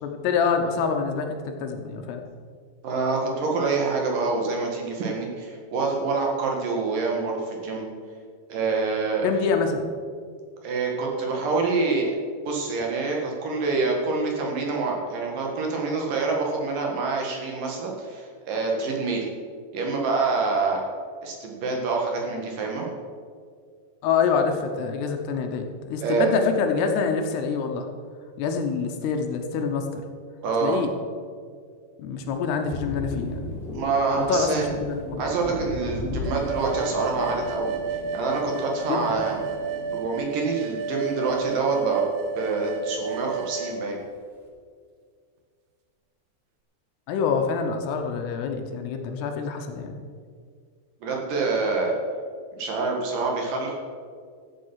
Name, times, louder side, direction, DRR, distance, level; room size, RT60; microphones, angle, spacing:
voice 1, 0.0-2.2 9.2-9.9 24.0-27.9 28.4-30.0 30.6-30.9 32.0-33.5 34.1-35.3 38.9-39.2 47.1-50.0, left 5 dB, 75° left, 4 dB, 2.8 m, -26 dB
voice 2, 2.8-7.8 8.5-9.3 10.6-12.1 12.5-19.3 19.7-20.8 21.2-22.9 26.0-26.3 30.4-30.8 33.7-34.7 35.2-37.7 38.1-39.4 39.9-42.0 42.4-44.0 51.0-51.9 52.5-53.7, right 4 dB, 55° right, 0 dB, 2.9 m, -26 dB
Thunder, 32.2-42.0 42.3-43.5, left 2 dB, 20° left, 1.9 m, -37 dB
sound 1, 36.2-43.8, right 4 dB, 85° right, 2.1 m, -32 dB
14.0 x 8.9 x 5.6 m, 2.1 s
omnidirectional pair, 5.2 m